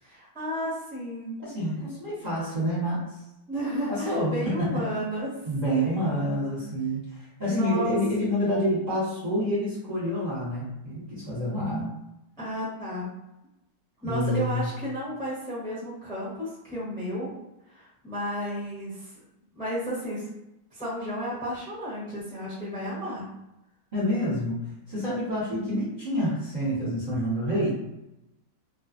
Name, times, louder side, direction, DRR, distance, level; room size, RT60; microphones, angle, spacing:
voice 1, 0.0-1.4 3.5-5.3 5.7-6.6 7.4-8.0 12.4-13.1 14.0-17.3 17.7-19.1 19.5-20.3 20.7-23.3, equal, 5° left, -8 dB, 0.7 m, -33 dB
voice 2, 1.4-3.1 3.9-4.9 5.5-11.9 14.0-14.7 23.9-24.6 24.9-27.8, equal, 30° right, -10 dB, 0.9 m, -28 dB
2.5 x 2.4 x 2.5 m, 0.92 s
omnidirectional pair, 1.8 m